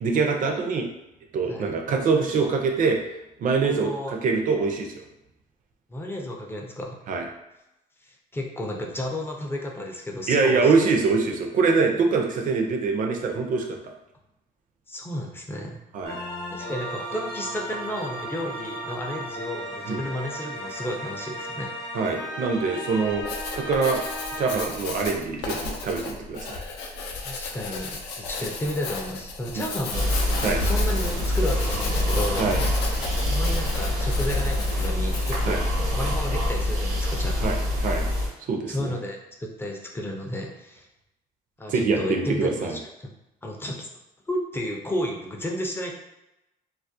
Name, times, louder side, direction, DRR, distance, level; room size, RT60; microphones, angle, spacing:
voice 1, 0.0-0.9 1.3-3.0 3.4-5.0 7.1-7.2 10.3-13.9 15.9-16.1 19.9-20.0 21.9-23.2 23.6-24.0 24.4-26.6 30.4-30.6 32.4-32.6 35.5-35.6 37.4-38.0 38.5-39.0 41.7-42.8, right 4 dB, 50° right, 2 dB, 0.5 m, -24 dB
voice 2, 3.5-4.1 5.9-7.0 8.3-10.9 14.9-15.8 16.5-21.7 27.2-30.1 30.6-32.5 33.3-35.6 35.9-37.8 38.7-39.2 39.6-40.9 41.6-42.8 43.4-43.9 44.3-45.9, left 1 dB, 15° left, 0 dB, 0.4 m, -32 dB
sound 1, 16.0-24.6, equal, 55° left, 0.8 m, -35 dB
Writing, 23.1-35.5, left 4 dB, 80° left, 0.4 m, -34 dB
sound 2, 29.9-38.3, left 1 dB, 80° right, 0.9 m, -25 dB
2.3 x 2.0 x 2.6 m, 0.92 s
cardioid pair, 110°, 17 cm